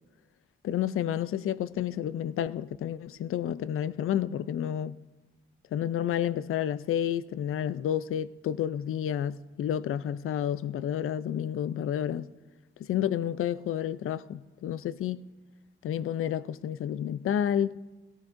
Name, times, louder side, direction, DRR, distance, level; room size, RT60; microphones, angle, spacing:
voice 1, 0.6-5.0 5.7-12.3 12.8-15.2 15.8-17.8, left 10 dB, 80° left, 0.4 m, -30 dB
18.0 x 17.5 x 2.6 m
cardioid pair, 80°, 21 cm